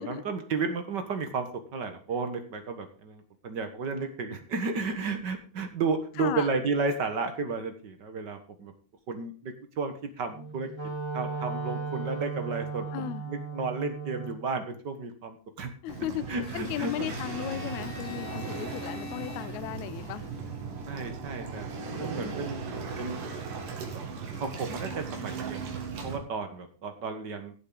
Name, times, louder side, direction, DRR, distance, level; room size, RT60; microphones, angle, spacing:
voice 1, 0.0-8.7 9.1-10.7 11.1-15.7 16.3-17.1 20.9-23.2 23.9-24.0 24.4-27.5, right 4 dB, 50° right, 1.4 m, -33 dB
voice 2, 6.2-6.5 12.9-13.3 15.8-20.3, left 13 dB, 75° left, 1.9 m, -35 dB
Wind instrument woodwind instrument, 10.3-14.4, right 4 dB, 10° right, 3.3 m, -36 dB
Waves surf, 15.9-26.2, right 5 dB, 85° right, 3.8 m, -37 dB
Domestic sounds home sounds, 16.4-20.5, left 6 dB, 55° left, 3.8 m, -46 dB
16.0 x 7.7 x 3.9 m
omnidirectional pair, 3.7 m